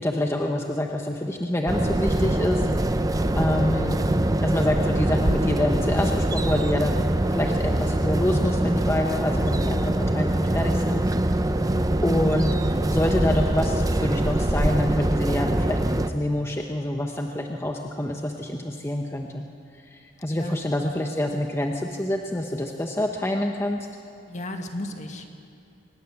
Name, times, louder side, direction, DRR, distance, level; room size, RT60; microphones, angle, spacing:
voice 1, 0.0-2.7 3.3-4.1 4.4-7.0 7.3-19.5 19.9-23.9, left 1 dB, 15° left, 2 dB, 1.0 m, -27 dB
sound 1, 1.7-16.1, right 1 dB, 20° right, 0.7 m, -23 dB
voice 2, 20.3-20.7 24.3-25.3, left 1 dB, 40° left, 4 dB, 1.9 m, -35 dB
24.5 x 19.5 x 7.2 m, 2.5 s
head